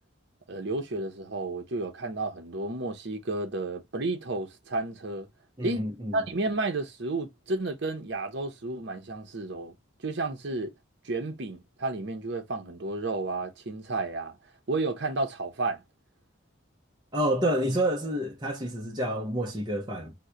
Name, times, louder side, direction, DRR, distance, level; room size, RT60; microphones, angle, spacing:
voice 1, 0.5-5.3 5.6-5.8 6.1-9.8 10.0-10.7 11.0-14.4 14.7-15.8, right 2 dB, 55° right, 0.8 m, -32 dB
voice 2, 5.6-6.2 17.1-20.1, right 1 dB, 20° right, 0.6 m, -28 dB
2.9 x 2.2 x 3.7 m
head